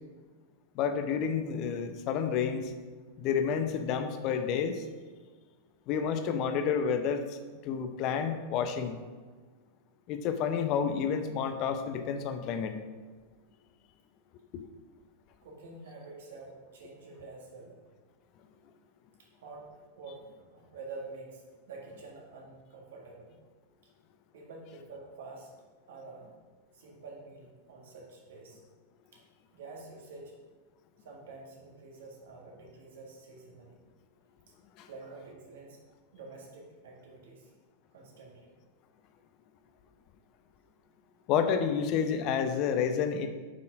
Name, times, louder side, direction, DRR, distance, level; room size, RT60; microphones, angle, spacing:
voice 1, 0.7-2.7 3.2-4.8 5.9-7.4 7.6-9.0 10.1-12.8 14.5-14.6 34.8-34.9 41.3-43.3, left 7 dB, 40° left, 8 dB, 0.8 m, -30 dB
voice 2, 15.4-17.8 19.4-23.4 24.3-25.5 25.9-26.3 26.7-28.6 29.1-29.2 29.5-30.3 31.0-33.8 34.5-34.6 34.8-35.8 36.1-37.5 37.9-38.5, right 3 dB, 60° right, -1 dB, 1.8 m, -48 dB
7.5 x 5.8 x 5.0 m, 1.4 s
figure-of-eight pair, 90°, 0 cm